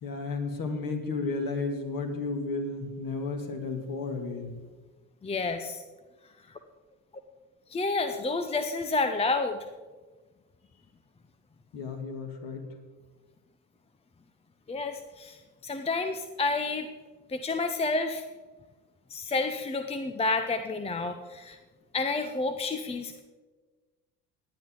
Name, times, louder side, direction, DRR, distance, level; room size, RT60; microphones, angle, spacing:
voice 1, 0.0-4.6 11.7-12.7, left 3 dB, 40° left, 4 dB, 2.6 m, -33 dB
voice 2, 5.2-5.8 7.7-9.6 14.7-15.4 15.6-16.9 17.3-18.2 19.1-21.6 21.9-23.2, left 3 dB, 10° left, 8 dB, 0.8 m, -29 dB
18.0 x 10.0 x 3.9 m, 1.3 s
figure-of-eight pair, 65°, 50 cm